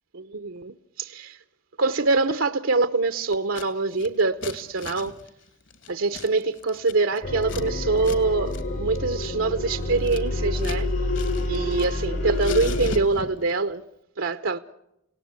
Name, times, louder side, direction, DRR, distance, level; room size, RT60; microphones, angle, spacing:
voice 1, 0.1-1.4 1.8-5.1 5.9-10.9 11.5-13.8 14.2-14.6, right 3 dB, 90° right, 0.9 m, -24 dB
Scissors, 3.3-3.7 3.9-7.7 8.0-8.2 8.5-8.6 9.0-10.8 11.1-12.1 12.4-13.5, left 4 dB, 70° left, 2.3 m, -39 dB
sound 1, 7.2-13.0, left 2 dB, 85° left, 3.3 m, -28 dB
28.5 x 18.5 x 8.2 m
head